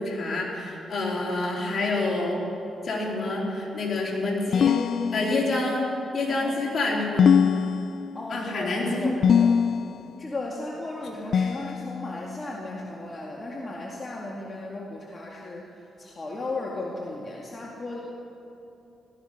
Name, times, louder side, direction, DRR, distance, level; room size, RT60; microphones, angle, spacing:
voice 1, 0.0-2.4 2.8-4.8 5.1-5.9 6.1-7.3 8.3-9.1, left 2 dB, 50° left, -3 dB, 3.9 m, -27 dB
sound 1, 4.5-5.7 7.2-8.3 9.2-10.1 11.3-12.3, left 7 dB, 70° left, 0.3 m, -22 dB
voice 2, 6.2-7.0 8.1-9.5 10.2-18.0, left 2 dB, 30° left, -3 dB, 2.1 m, -36 dB
17.0 x 14.0 x 5.8 m, 3.0 s
cardioid pair, 85°, 0 cm